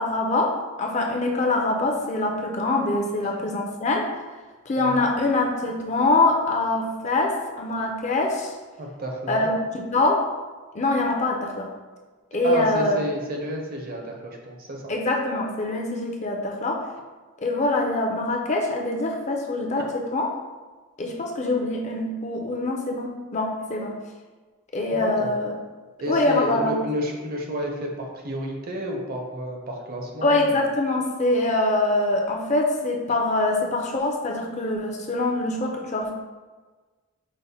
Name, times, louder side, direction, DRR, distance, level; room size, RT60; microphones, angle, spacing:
voice 1, 0.0-4.1 4.7-8.5 9.3-10.2 10.7-11.7 12.3-13.0 14.9-16.8 17.4-20.3 21.0-24.0 24.7-25.5 26.1-26.8 30.2-36.1, left 2 dB, 30° left, 1 dB, 0.4 m, -24 dB
voice 2, 4.8-5.1 8.8-9.5 12.4-14.8 25.0-25.3 26.0-30.5, equal, 40° right, 1 dB, 0.6 m, -30 dB
5.1 x 2.1 x 4.1 m, 1.3 s
head